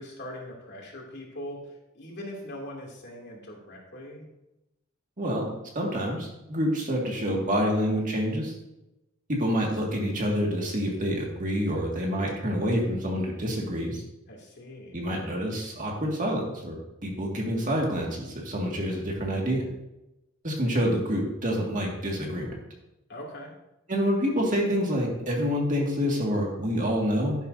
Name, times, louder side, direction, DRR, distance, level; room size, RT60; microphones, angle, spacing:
voice 1, 0.0-4.3 14.3-15.0 23.1-23.5, left 1 dB, 55° left, -1 dB, 2.7 m, -41 dB
voice 2, 5.2-8.5 9.3-14.0 14.9-16.8 17.0-19.6 20.4-22.5 23.9-27.4, equal, 40° right, -1 dB, 2.0 m, -27 dB
12.0 x 10.5 x 2.7 m, 0.92 s
head